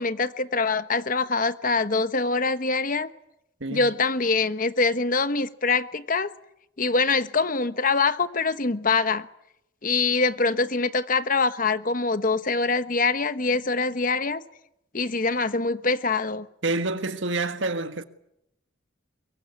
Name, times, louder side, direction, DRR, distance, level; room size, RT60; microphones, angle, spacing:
voice 1, 0.0-3.1 3.7-6.3 6.8-9.3 9.8-14.4 14.9-16.5, left 4 dB, 45° left, 1.2 m, -24 dB
voice 2, 3.6-3.9 16.6-18.0, right 2 dB, 75° right, 1.6 m, -28 dB
23.0 x 23.0 x 9.6 m
head